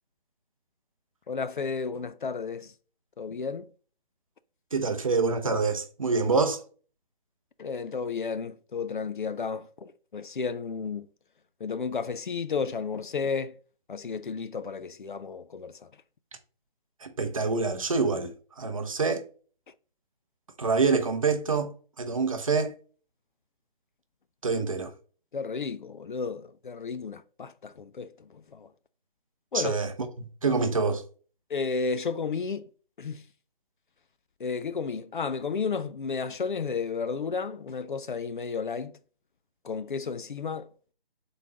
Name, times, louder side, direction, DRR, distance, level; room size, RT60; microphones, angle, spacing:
voice 1, 1.3-2.7 3.2-3.7 7.6-11.1 11.6-13.5 13.9-15.8 25.3-28.7 29.5-29.8 31.5-32.7 33.0-33.2 34.4-39.0 39.6-40.7, left 5 dB, 55° left, 0.5 m, -32 dB
voice 2, 4.7-6.6 17.0-18.3 18.6-19.2 20.6-21.7 22.0-22.7 24.4-24.9 29.5-29.9 30.2-31.0, right 4 dB, 35° right, 0.6 m, -26 dB
3.8 x 3.5 x 3.8 m
figure-of-eight pair, 150°, 30 cm